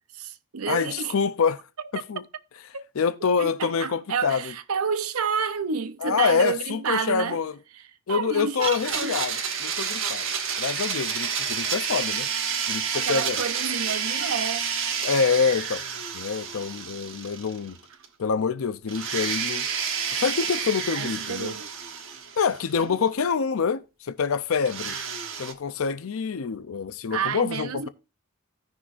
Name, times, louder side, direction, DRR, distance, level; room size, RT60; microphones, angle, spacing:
voice 1, 0.1-1.1 2.7-3.1 3.4-7.4 7.7-9.2 11.0-11.1 12.9-14.7 21.0-21.7 22.8-23.3 27.1-27.9, right 6 dB, 90° right, 0.7 m, -30 dB
voice 2, 0.7-1.6 2.1-2.2 3.0-4.4 6.0-7.5 8.1-10.3 10.6-12.3 12.7-13.4 15.0-15.8 16.1-17.8 18.2-19.6 20.2-21.5 22.4-25.0 25.4-27.9, left 6 dB, 70° left, 0.5 m, -26 dB
Domestic sounds home sounds, 8.6-17.8 18.0-18.1 18.9-22.8 24.6-25.5, right 6 dB, 65° right, 1.1 m, -30 dB
15.5 x 6.2 x 2.5 m
head